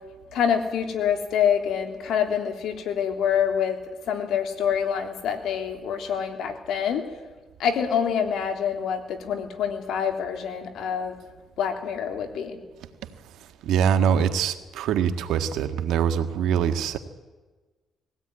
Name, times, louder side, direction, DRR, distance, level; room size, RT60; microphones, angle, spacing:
voice 1, 0.3-3.8 4.1-7.0 7.6-11.2 11.6-12.6, left 8 dB, 80° left, 5 dB, 3.2 m, -26 dB
voice 2, 13.6-17.0, right 8 dB, 85° right, 7 dB, 1.7 m, -23 dB
21.0 x 16.5 x 9.7 m, 1.3 s
cardioid pair, 90°, 0 cm